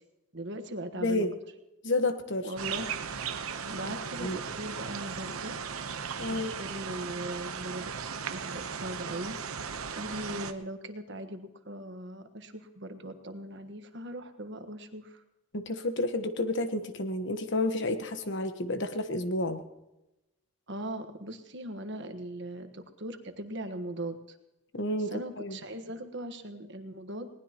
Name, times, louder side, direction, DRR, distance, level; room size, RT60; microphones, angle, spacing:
voice 1, 0.3-1.3 2.4-2.9 3.7-5.5 6.3-9.4 9.9-15.2 20.7-24.2 25.0-27.3, right 1 dB, 55° right, 7 dB, 1.4 m, -39 dB
voice 2, 1.0-1.3 1.8-2.5 3.8-3.9 4.2-4.4 6.2-6.5 15.5-19.6 24.7-25.6, left 2 dB, 55° left, 8 dB, 1.2 m, -30 dB
sound 1, 2.6-10.5, right 6 dB, 80° right, 1.0 m, -37 dB
20.5 x 19.0 x 3.0 m, 0.94 s
head